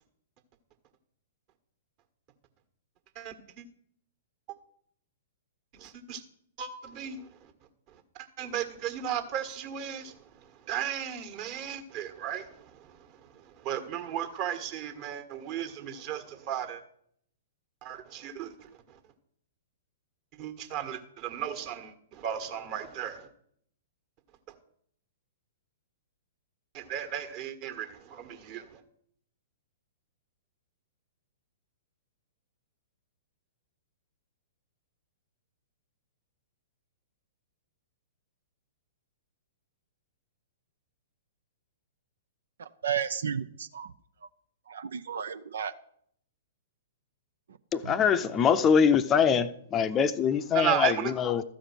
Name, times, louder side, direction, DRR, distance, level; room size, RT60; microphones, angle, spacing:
voice 1, 3.1-3.6 5.7-6.2 6.6-7.3 8.4-10.2 10.7-12.9 13.3-16.8 17.8-18.5 18.9-19.0 20.4-23.3 26.7-28.8 50.5-51.1, right 10 dB, 40° right, 1.5 m, -35 dB
voice 2, 42.8-43.9 44.7-45.7 47.8-48.0, right 8 dB, 65° right, 0.5 m, -33 dB
voice 3, 47.7-51.4, left 7 dB, 25° left, 0.6 m, -24 dB
13.5 x 5.1 x 9.0 m
figure-of-eight pair, 110°, 0 cm